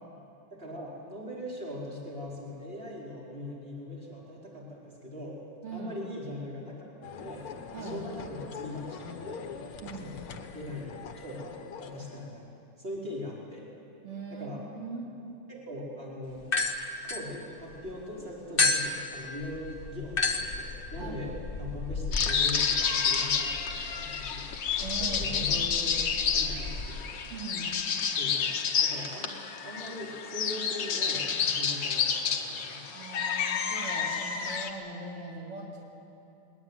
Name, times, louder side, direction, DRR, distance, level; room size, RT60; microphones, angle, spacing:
voice 1, 0.5-5.4 5.7-7.5 7.8-9.4 10.0-13.7 14.3-14.6 15.5-16.5 17.1-21.3 21.6-24.5 25.0-26.1 26.3-27.1 28.2-28.5 28.8-29.3 29.6-32.8, left 1 dB, 25° right, -4 dB, 4.7 m, -41 dB
sound 1, 7.0-12.3, left 6 dB, 75° left, 2.2 m, -43 dB
voice 2, 7.7-8.1 9.8-10.1 14.0-15.3 21.0-21.2 24.8-25.6 27.3-27.7 32.9-35.8, right 3 dB, 85° right, -1 dB, 3.5 m, -40 dB
sound 2, 16.4-17.9 18.6-26.9, left 3 dB, 30° left, 1.3 m, -33 dB
sound 3, 22.1-34.7, left 6 dB, 60° left, 1.9 m, -30 dB
21.5 x 19.5 x 9.7 m, 2.8 s
omnidirectional pair, 2.4 m